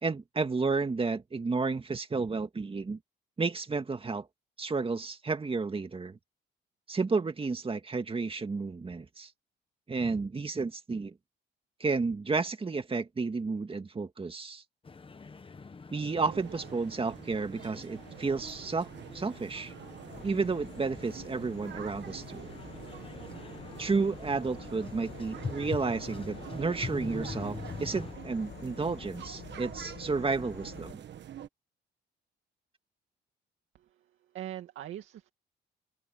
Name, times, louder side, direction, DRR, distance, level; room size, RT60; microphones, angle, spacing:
voice 1, 0.0-3.0 3.4-4.3 4.6-6.2 6.9-9.3 9.9-11.1 11.8-14.6 15.9-19.7 20.2-22.5 23.8-31.0, right 4 dB, 30° right, 2.1 m, -32 dB
sound 1, 14.8-28.1, left 4 dB, 25° left, 1.4 m, -45 dB
sound 2, 16.1-31.5, right 10 dB, 65° right, 1.4 m, -46 dB
Insect / Frog, 20.1-30.9, left 9 dB, 55° left, 1.7 m, -48 dB
voice 2, 33.7-35.3, right 12 dB, 80° right, 2.3 m, -42 dB
open air
cardioid pair, 90°, 20 cm